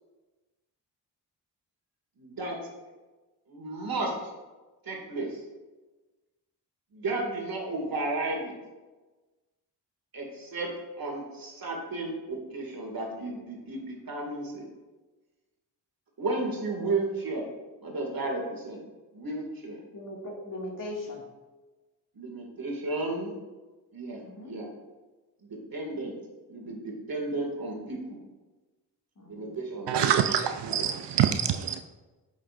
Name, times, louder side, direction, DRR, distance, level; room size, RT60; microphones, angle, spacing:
voice 1, 2.2-2.7 3.5-4.2 4.8-5.4 6.9-8.5 10.1-14.6 16.2-17.5 17.8-18.8 19.1-19.8 22.1-23.3 23.9-24.7 25.4-26.2 26.5-28.2 29.3-30.0 30.3-30.4 30.6-30.9, right 2 dB, 50° right, 2.2 m, -33 dB
voice 2, 19.9-21.2 24.2-24.5 29.2-29.5, left 1 dB, 45° left, 2.0 m, -39 dB
voice 3, 29.9-31.8, right 9 dB, 65° right, 0.6 m, -25 dB
9.0 x 6.3 x 2.5 m
supercardioid pair, 45°, 45 cm